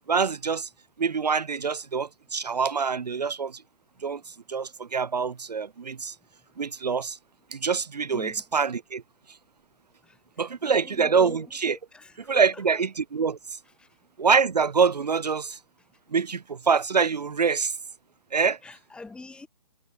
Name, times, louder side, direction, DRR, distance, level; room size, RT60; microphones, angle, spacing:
voice 1, 0.1-0.7 1.0-3.6 4.0-6.1 6.6-7.2 7.5-9.0 10.4-11.8 12.3-13.6 14.2-15.6 16.1-17.8 18.3-18.6, right 5 dB, 80° right, 0.9 m, -25 dB
voice 2, 8.1-8.4 10.0-11.5 11.9-12.8 13.7-14.0 18.6-19.5, left 3 dB, 5° left, 3.1 m, -44 dB
figure-of-eight pair, 140°, 21 cm